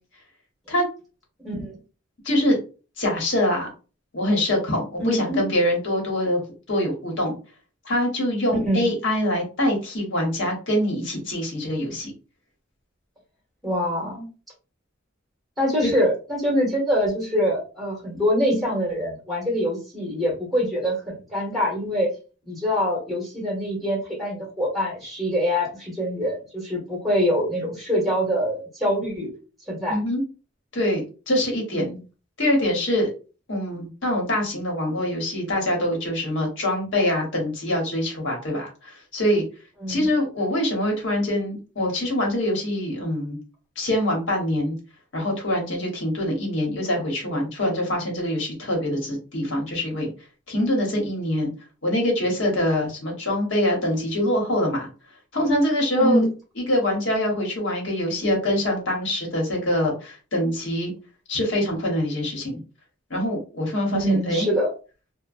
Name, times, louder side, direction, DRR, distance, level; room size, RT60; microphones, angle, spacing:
voice 1, 1.4-1.8 5.0-5.5 8.6-8.9 13.6-14.3 15.6-22.1 22.5-29.3 29.7-30.0 31.7-32.0 39.8-40.1 56.0-56.3 63.9-64.7, equal, ahead, -2 dB, 1.1 m, -24 dB
voice 2, 2.2-2.6 3.0-3.7 4.1-6.4 6.7-7.4 7.8-12.1 15.8-15.9 29.9-30.2 30.7-31.9 32.4-33.1 33.5-39.4 39.9-43.4 43.8-44.8 45.1-50.1 50.5-51.5 51.8-54.9 55.3-56.2 56.6-60.9 61.3-62.6 63.1-64.5, left 1 dB, 70° left, 0 dB, 1.2 m, -24 dB
2.9 x 2.1 x 2.5 m, 0.34 s
head